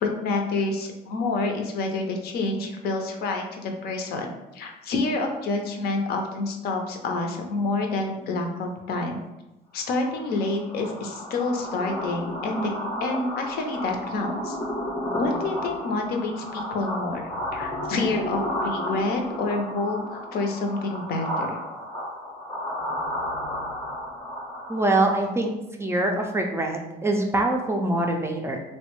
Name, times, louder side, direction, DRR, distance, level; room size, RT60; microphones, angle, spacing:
voice 1, 0.0-4.3 4.5-9.2 9.7-12.7 13.0-14.6 15.1-17.2 17.5-21.6, left 3 dB, 65° left, 3 dB, 0.5 m, -28 dB
sound 1, 9.9-25.3, left 1 dB, 20° left, 0.6 m, -32 dB
voice 2, 24.7-25.5 25.8-28.6, right 2 dB, 15° right, 2 dB, 0.3 m, -24 dB
3.0 x 2.1 x 3.0 m, 0.96 s
cardioid pair, 110°, 17 cm